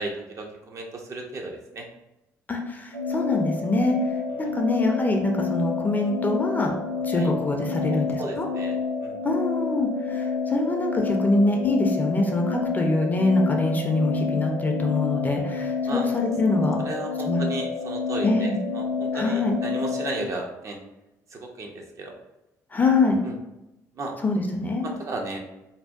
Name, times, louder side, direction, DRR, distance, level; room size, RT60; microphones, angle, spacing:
voice 1, 0.0-1.9 4.3-4.5 7.1-7.3 7.9-9.2 15.8-16.1 16.8-20.8 21.3-22.1 23.2-23.3 23.9-24.1 24.8-25.4, right 2 dB, 35° right, 1 dB, 0.4 m, -34 dB
voice 2, 2.5-4.0 4.4-6.7 7.0-8.5 9.2-16.8 17.3-17.5 18.2-18.6 19.1-19.6 22.7-23.2 24.2-24.9, left 2 dB, 20° left, 2 dB, 0.4 m, -24 dB
sound 1, 2.9-20.3, left 5 dB, 90° right, 0.5 m, -29 dB
2.6 x 2.1 x 2.3 m, 0.93 s
figure-of-eight pair, 50°, 9 cm